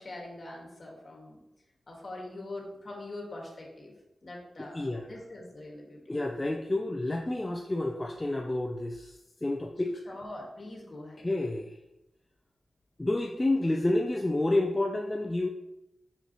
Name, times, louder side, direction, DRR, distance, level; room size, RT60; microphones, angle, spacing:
voice 1, 0.0-1.4 1.9-3.9 4.2-6.0 10.0-11.3, left 2 dB, 45° left, -1 dB, 1.6 m, -43 dB
voice 2, 4.6-5.1 6.1-10.0 11.2-11.8 13.0-15.5, left 2 dB, 20° left, 2 dB, 0.4 m, -29 dB
5.8 x 5.6 x 2.9 m, 0.92 s
wide cardioid pair, 100°, 0 cm